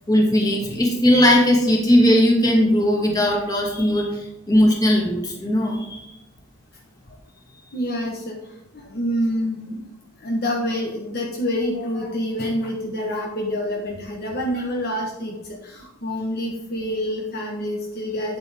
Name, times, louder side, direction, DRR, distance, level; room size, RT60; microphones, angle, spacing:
voice 1, 0.1-6.1, equal, 20° left, -1 dB, 2.2 m, -18 dB
voice 2, 7.7-8.4 8.7-9.8 10.2-15.4 15.6-18.4, equal, 50° left, -1 dB, 1.4 m, -27 dB
8.8 x 8.0 x 3.5 m, 0.95 s
head